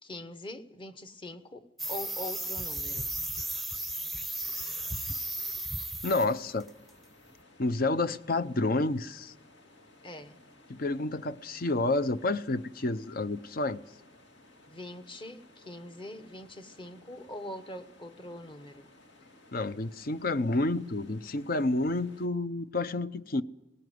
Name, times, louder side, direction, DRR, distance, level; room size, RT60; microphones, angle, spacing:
voice 1, 0.0-3.1 10.0-10.4 14.7-18.9, left 1 dB, 30° left, 1.2 m, -43 dB
sound 1, 1.8-6.3 6.6-6.9, right 1 dB, ahead, 0.7 m, -35 dB
voice 2, 6.0-6.7 7.6-9.3 10.7-13.8 19.5-23.4, left 2 dB, 55° left, 0.7 m, -29 dB
sound 2, 6.1-22.3, left 2 dB, 70° left, 2.4 m, -58 dB
19.0 x 16.5 x 9.4 m
head